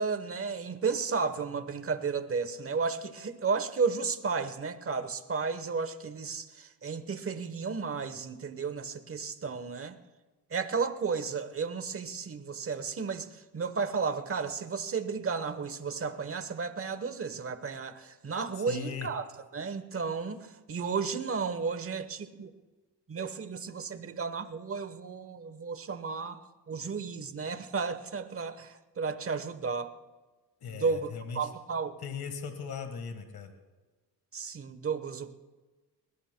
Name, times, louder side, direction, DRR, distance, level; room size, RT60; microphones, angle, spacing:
voice 1, 0.0-10.0 10.5-19.2 19.5-22.5 23.1-26.4 26.7-29.9 30.7-32.0 34.3-35.3, right 5 dB, 35° right, 11 dB, 1.0 m, -33 dB
voice 2, 18.6-19.1 30.6-31.5 32.0-33.5, left 6 dB, 60° left, 7 dB, 1.6 m, -39 dB
21.0 x 20.5 x 2.2 m, 1.2 s
cardioid pair, 105°, 41 cm